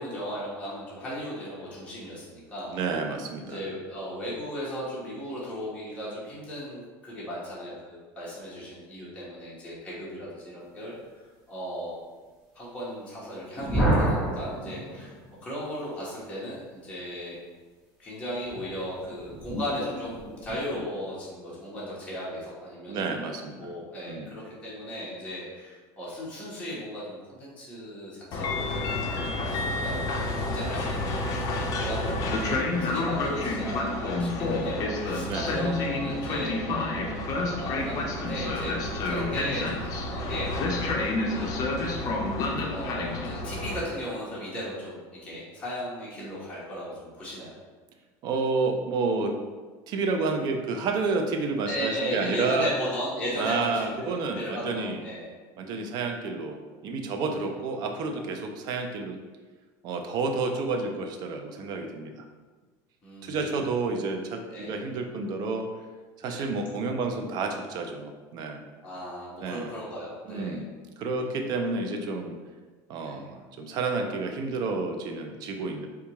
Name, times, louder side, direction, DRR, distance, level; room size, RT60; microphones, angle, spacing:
voice 1, 0.0-2.7 3.5-11.2 11.5-12.0 12.5-15.1 15.4-17.4 18.0-23.1 23.6-40.5 41.1-41.5 42.6-47.5 51.7-55.3 57.3-57.4 63.0-63.4 64.5-64.7 66.2-66.5 68.8-70.6 73.0-73.3, equal, 15° left, -8 dB, 1.0 m, -36 dB
voice 2, 2.7-3.6 22.9-23.6 24.0-24.3 35.2-35.5 36.0-36.2 48.2-49.4 49.9-52.7 53.4-55.0 55.6-59.2 59.8-62.2 63.2-65.7 66.2-68.6 69.4-69.7 70.2-70.6 71.0-72.3 72.9-75.9, right 3 dB, 55° right, 4 dB, 0.5 m, -30 dB
sound 1, 13.6-15.5 18.4-20.8, right 1 dB, 5° right, 1.2 m, -29 dB
Train, 28.3-43.8, left 2 dB, 45° left, 0.5 m, -29 dB
4.5 x 2.3 x 2.9 m, 1.4 s
cardioid pair, 135°, 8 cm